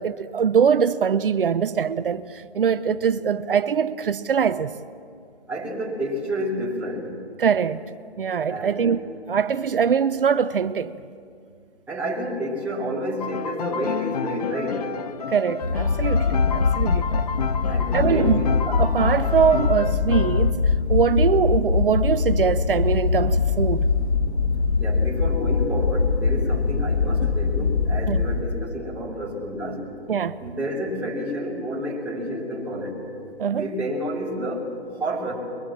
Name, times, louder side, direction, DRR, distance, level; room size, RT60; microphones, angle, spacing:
voice 1, 0.0-4.8 7.4-7.8 8.2-9.0 9.3-10.9 15.3-17.2 17.9-18.4 18.7-20.6 20.9-23.9 28.1-28.2 30.1-30.4 33.4-33.7, right 7 dB, 55° right, 0.8 m, -22 dB
voice 2, 5.5-7.1 8.5-8.9 11.9-14.9 17.7-18.6 24.8-29.8 30.4-33.0 33.5-35.3, equal, 5° right, 3.3 m, -29 dB
Piano, 13.2-20.5, left 7 dB, 35° left, 0.9 m, -30 dB
sound 1, 15.6-28.4, left 4 dB, 75° left, 2.1 m, -22 dB
24.0 x 22.5 x 7.4 m
hypercardioid pair, 160°, 33 cm